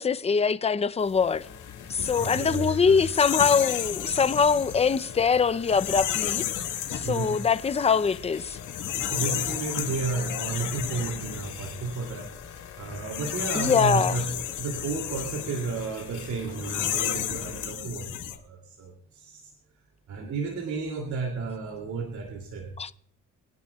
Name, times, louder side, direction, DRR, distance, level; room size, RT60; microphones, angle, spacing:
voice 1, 0.0-1.5 1.9-6.4 6.9-8.6 13.5-14.2 22.8-22.9, left 6 dB, 20° left, 0.6 m, -23 dB
sound 1, 1.1-18.4, left 11 dB, 85° left, 1.9 m, -33 dB
sound 2, 1.4-17.7, left 7 dB, 60° left, 3.3 m, -46 dB
voice 2, 2.2-3.1 4.6-4.7 7.0-7.4 8.9-12.3 12.8-19.5 20.1-22.7, right 4 dB, 70° right, 2.8 m, -32 dB
23.0 x 11.0 x 2.4 m
cardioid pair, 90°, 30 cm